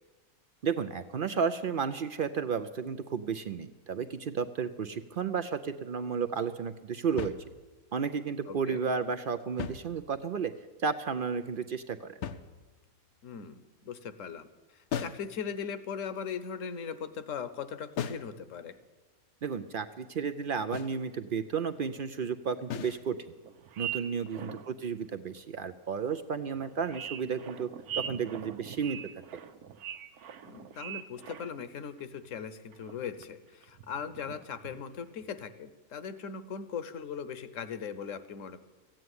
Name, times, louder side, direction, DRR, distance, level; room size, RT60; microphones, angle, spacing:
voice 1, 0.6-7.3 7.9-10.5 10.8-12.2 19.4-23.2 23.8-27.7 27.9-29.0, right 6 dB, 65° right, 10 dB, 0.5 m, -32 dB
sound 1, 7.2-7.9 9.4-10.4 12.2-13.0 14.9-15.3 18.0-18.4 20.7-21.0 22.7-23.1, left 7 dB, 85° left, 1.3 m, -38 dB
voice 2, 8.5-8.8 13.2-14.5 14.7-18.8 24.4-24.6 30.4-38.6, left 7 dB, 60° left, 13 dB, 1.2 m, -39 dB
sound 2, 22.0-22.1 22.9-23.0 23.4-24.8 25.3-25.4 26.1-26.2 26.5-31.7 32.0-32.3 32.7-33.3 33.6-34.8 35.2-35.5, right 9 dB, 80° right, 1.3 m, -42 dB
15.0 x 9.0 x 9.5 m, 1.2 s
omnidirectional pair, 1.6 m